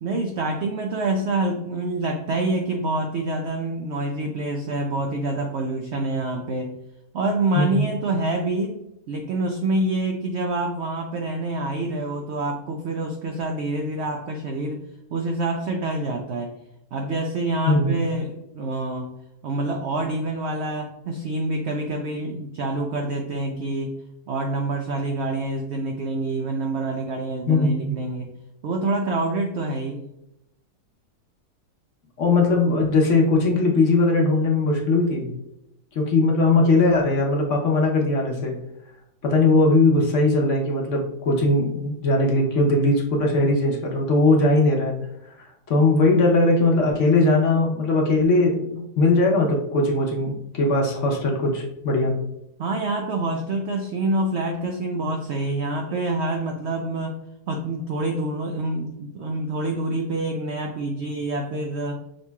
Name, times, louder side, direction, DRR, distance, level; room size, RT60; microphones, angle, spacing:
voice 1, 0.0-6.7 7.1-8.8 9.1-14.8 15.1-16.5 16.9-19.1 19.4-23.9 24.3-28.3 28.6-30.0 52.6-57.1 57.5-62.0, right 2 dB, 75° right, 3 dB, 0.6 m, -26 dB
voice 2, 17.7-18.0 27.5-28.0 32.2-35.3 35.9-38.5 39.2-45.0 45.4-52.1, left 2 dB, 55° left, -1 dB, 1.0 m, -20 dB
6.3 x 2.9 x 2.2 m, 0.84 s
omnidirectional pair, 1.7 m